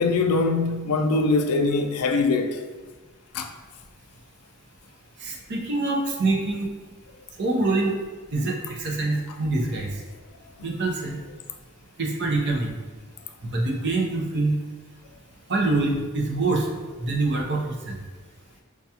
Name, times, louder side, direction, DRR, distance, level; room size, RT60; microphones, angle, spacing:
voice 1, 0.0-2.6 3.3-3.5, left 3 dB, 85° left, 0.4 m, -22 dB
voice 2, 5.2-6.7 7.4-7.9 8.3-9.9 10.6-11.2 12.0-12.7 13.4-14.6 15.5-16.7 17.0-18.0, right 2 dB, 55° right, 0.6 m, -25 dB
4.6 x 2.3 x 2.8 m
head